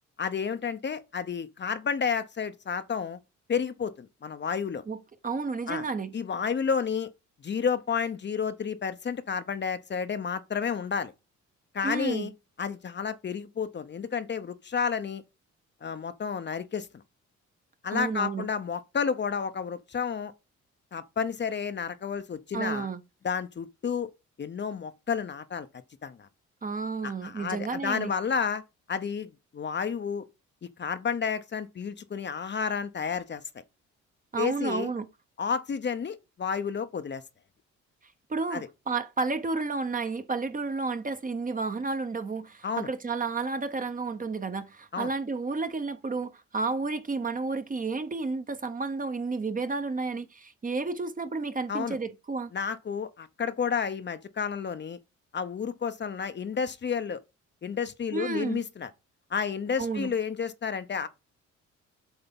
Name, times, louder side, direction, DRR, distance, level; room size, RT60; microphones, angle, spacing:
voice 1, 0.2-3.2 3.5-4.8 5.7-5.8 6.1-7.1 7.4-11.1 11.7-12.3 12.6-15.2 15.8-16.9 17.8-20.3 20.9-22.9 23.2-24.1 24.4-25.7 26.0-26.3 27.0-28.6 28.9-30.2 30.8-33.4 34.4-34.9 35.4-37.2 38.5-38.7 42.6-42.9 44.9-45.1 51.7-52.0 52.5-55.0 55.3-57.2 57.6-58.9 59.3-61.1, left 6 dB, 35° left, 0.7 m, -31 dB
voice 2, 5.2-6.1 11.8-12.3 17.9-18.5 22.5-23.0 26.6-28.1 34.3-35.1 38.3-52.5 58.1-58.6 59.8-60.1, right 4 dB, 25° right, 0.9 m, -31 dB
8.0 x 3.4 x 5.3 m
cardioid pair, 90°, 30 cm